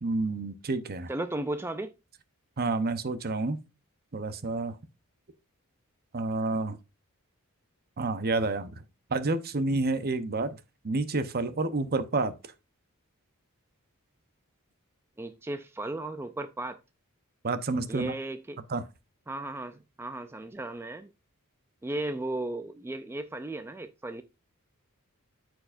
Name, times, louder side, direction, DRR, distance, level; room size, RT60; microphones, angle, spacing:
voice 1, 0.0-1.1 2.6-3.6 4.1-4.8 6.1-6.8 8.0-8.8 9.1-10.6 10.8-12.3 17.4-18.1 18.7-18.8, right 3 dB, 45° right, 0.8 m, -29 dB
voice 2, 1.1-1.9 15.2-16.8 17.9-18.6 19.3-21.1 21.8-24.2, right 2 dB, 10° right, 0.4 m, -35 dB
13.0 x 4.7 x 2.5 m
head